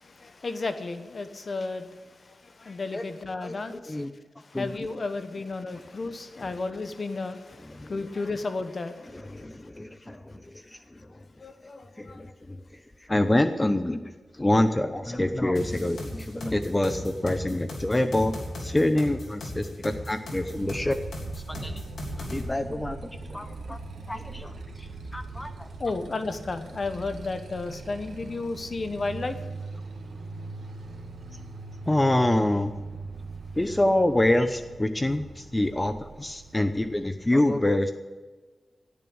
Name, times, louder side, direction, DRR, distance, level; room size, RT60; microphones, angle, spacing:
voice 1, 0.0-4.0 4.5-9.5 11.4-12.2 21.6-21.7 23.5-23.6 25.8-29.4, left 3 dB, 55° left, 9 dB, 1.1 m, -33 dB
voice 2, 3.4-4.1 4.5-4.9 6.4-6.5 7.7-7.9 9.1-11.1 12.0-12.6 13.0-21.0 21.5-21.8 22.2-23.8 24.1-25.7 31.9-32.7 33.6-37.9, left 1 dB, 20° left, 9 dB, 0.8 m, -26 dB
sound 1, 15.6-22.4, left 1 dB, 80° left, 3.4 m, -37 dB
Motorcycle, 20.5-37.0, right 3 dB, 85° right, 1.8 m, -41 dB
16.5 x 7.1 x 8.8 m, 1.4 s
cardioid pair, 60°, 0 cm